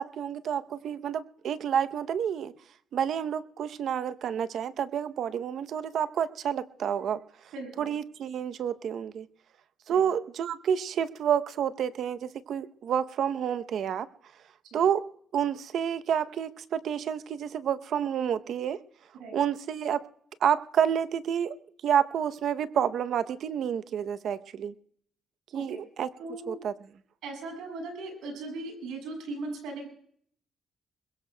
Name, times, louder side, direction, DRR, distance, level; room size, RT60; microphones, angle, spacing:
voice 1, 0.0-2.5 2.9-7.5 7.8-9.3 9.9-14.1 14.7-15.0 15.3-18.8 19.3-20.0 20.4-21.6 21.8-24.7 25.5-26.1 26.5-26.7, right 8 dB, 70° right, 13 dB, 0.7 m, -29 dB
voice 2, 7.5-7.9 9.9-10.0 14.7-14.8 19.2-19.4 25.5-25.8 26.2-26.6 27.2-29.9, right 2 dB, 90° right, 2 dB, 6.2 m, -38 dB
24.0 x 21.0 x 2.2 m, 0.63 s
cardioid pair, 90°, 0 cm